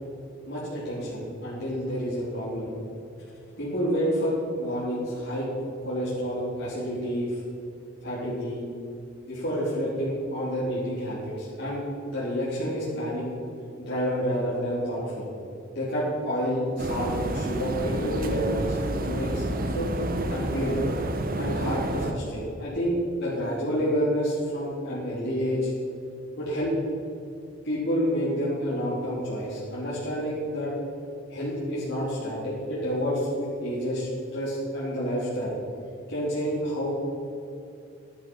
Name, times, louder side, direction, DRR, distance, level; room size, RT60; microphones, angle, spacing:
voice 1, 0.5-2.7 3.6-5.5 5.8-7.4 8.0-8.6 9.3-13.2 13.9-15.3 15.7-19.9 20.3-20.8 21.4-25.7 26.4-26.7 27.6-30.7 31.3-35.5 36.1-36.9, equal, 55° left, -9 dB, 3.5 m, -29 dB
sound 1, 16.8-22.1, right 1 dB, 45° right, 1.0 m, -29 dB
12.5 x 11.5 x 5.4 m, 2.7 s
head